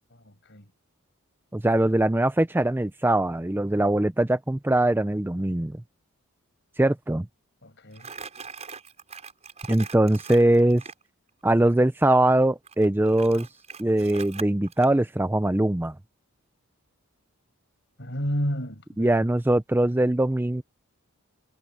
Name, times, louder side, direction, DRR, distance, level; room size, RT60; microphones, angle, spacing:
voice 1, 0.1-0.7 7.6-8.1 18.0-19.3, equal, 55° left, 6.6 m, -32 dB
voice 2, 1.5-5.8 6.8-7.3 9.7-10.8 11.4-13.5 13.8-15.9 19.0-20.6, right 1 dB, 10° right, 0.4 m, -22 dB
Crumpling crinkling, 7.9-11.0 12.7-14.9, right 5 dB, 30° right, 5.0 m, -41 dB
head